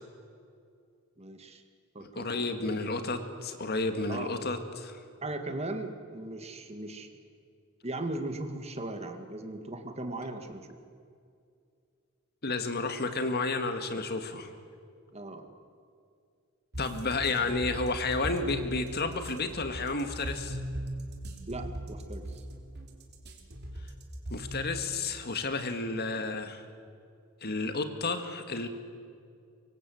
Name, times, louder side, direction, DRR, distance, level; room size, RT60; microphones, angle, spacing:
voice 1, 1.2-1.6 1.9-2.8 4.1-4.5 5.2-7.1 7.8-10.8 15.1-15.5 21.5-22.3, right 2 dB, 30° right, 7 dB, 2.0 m, -38 dB
voice 2, 2.0-5.0 12.4-14.5 16.8-20.6 24.3-26.6 27.4-28.7, left 3 dB, 50° left, 7 dB, 2.0 m, -31 dB
sound 1, 16.7-24.8, right 1 dB, 55° right, 3.4 m, -38 dB
25.0 x 23.5 x 7.9 m, 2.3 s
head